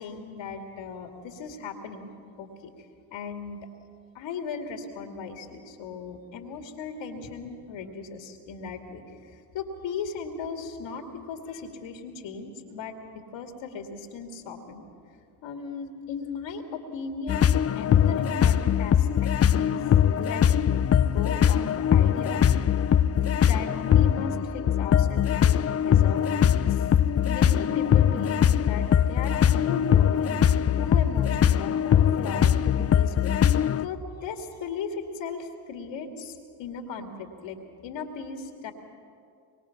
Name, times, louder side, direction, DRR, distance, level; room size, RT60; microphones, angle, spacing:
voice 1, 0.0-2.1 2.4-2.7 3.1-3.6 4.1-14.9 15.4-19.3 19.6-19.8 20.2-22.4 23.0-26.3 26.5-26.9 27.2-33.4 33.8-37.6 37.8-38.7, left 5 dB, 65° left, 5 dB, 2.5 m, -37 dB
sound 1, 17.3-33.9, left 9 dB, 30° left, 0.7 m, -21 dB
24.0 x 23.5 x 5.9 m, 2.3 s
hypercardioid pair, 55°, 49 cm